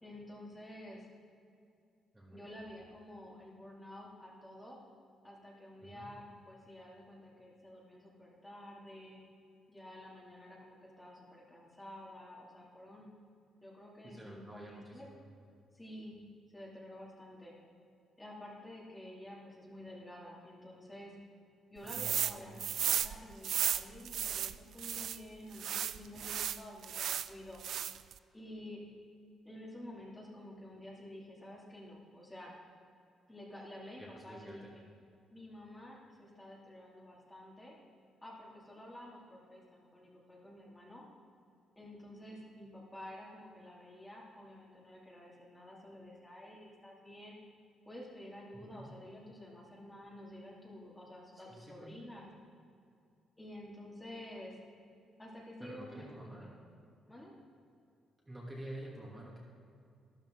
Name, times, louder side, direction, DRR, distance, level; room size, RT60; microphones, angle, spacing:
voice 1, 0.0-1.1 2.3-4.8 5.2-9.2 9.7-13.1 13.6-15.1 15.7-16.1 16.5-17.5 18.2-21.1 21.7-27.6 28.3-28.8 29.4-32.5 33.3-34.8 35.3-37.8 38.2-41.0 41.8-47.4 47.8-52.2 53.4-54.6 55.2-56.5 57.1-57.3, left 1 dB, 15° left, -4 dB, 2.9 m, -50 dB
voice 2, 2.1-2.4 5.8-6.1 14.0-15.2 21.8-22.6 34.0-34.7 48.7-48.9 51.3-51.9 55.6-56.5 58.3-59.4, right 1 dB, 15° right, -4 dB, 2.7 m, -49 dB
sound 1, 21.9-22.3 22.6-25.2 25.6-27.3 27.6-28.1, right 10 dB, 70° right, 0.4 m, -34 dB
13.0 x 11.5 x 3.9 m, 2.4 s
cardioid pair, 90°, 0 cm